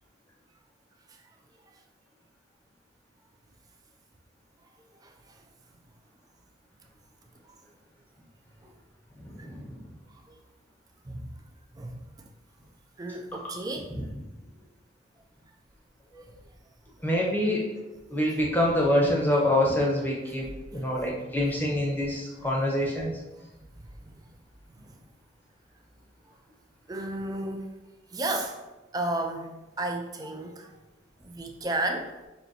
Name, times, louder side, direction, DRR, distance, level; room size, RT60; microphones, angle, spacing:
voice 1, 5.0-5.4 7.5-7.6 8.6-8.7 10.1-10.2 11.0-11.3 11.7-12.0 13.0-13.9 16.2-16.3 20.2-20.9 22.3-22.9 23.7-24.3 24.7-25.0 26.9-27.7 28.1-28.6 28.9-29.5 29.8-30.7 31.2-32.2, right 2 dB, 20° right, 4 dB, 0.4 m, -34 dB
voice 2, 9.2-9.8 17.0-17.6 18.1-20.5 20.7-23.1, left 1 dB, 10° left, -3 dB, 0.8 m, -25 dB
5.4 x 2.9 x 2.7 m, 1.1 s
head